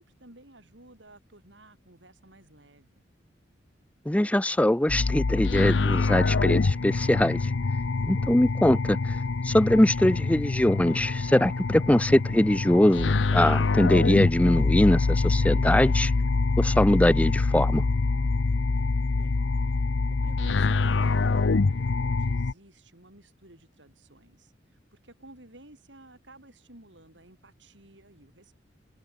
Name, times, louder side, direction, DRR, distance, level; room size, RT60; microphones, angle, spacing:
voice 1, 0.0-3.0 19.1-19.4 19.7-19.8 20.1-28.6, right 1 dB, 70° right, 5.9 m, -54 dB
voice 2, 4.1-7.5 8.0-8.8 9.4-16.1 16.6-17.8, left 1 dB, 5° left, 0.5 m, -22 dB
sound 1, 4.9-22.5, left 3 dB, 75° left, 0.6 m, -25 dB
head